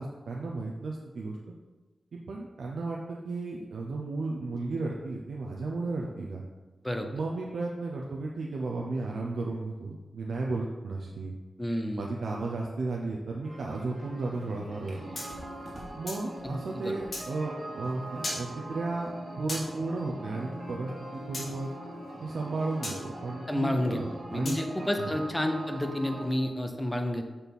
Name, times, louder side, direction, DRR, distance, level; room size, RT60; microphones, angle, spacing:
voice 1, 0.0-1.4 2.1-6.4 7.1-11.3 12.0-15.0 16.0-21.7 22.2-24.6 25.0-25.1, right 3 dB, 80° right, -2 dB, 0.6 m, -34 dB
voice 2, 11.6-12.1 16.4-16.9 23.5-24.0 24.3-27.3, left 1 dB, 5° left, 5 dB, 0.6 m, -30 dB
sound 1, 13.4-26.3, right 1 dB, 50° right, 1.5 m, -42 dB
sound 2, 15.1-16.3 17.1-17.3 18.2-18.4 19.5-19.7 21.3-21.5 22.8-23.0 24.4-24.6, left 1 dB, 55° left, 2.1 m, -36 dB
6.2 x 4.3 x 5.3 m, 1.3 s
wide cardioid pair, 170°, 0 cm